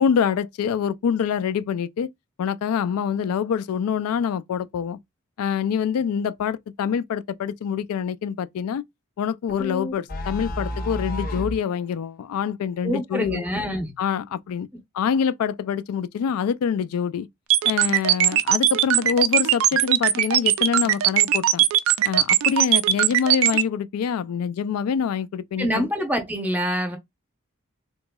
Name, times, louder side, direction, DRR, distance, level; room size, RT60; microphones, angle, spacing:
voice 1, 0.0-2.1 2.4-5.0 5.4-8.8 9.2-13.4 14.0-14.7 14.9-17.3 17.6-21.7 22.0-25.9, left 7 dB, 85° left, 0.3 m, -25 dB
sound 1, 9.5-11.6, left 1 dB, 40° left, 0.7 m, -30 dB
voice 2, 12.8-13.9 25.6-27.0, equal, 10° right, 0.6 m, -25 dB
sound 2, 17.5-23.6, right 12 dB, 70° right, 0.4 m, -19 dB
3.6 x 2.9 x 2.2 m
head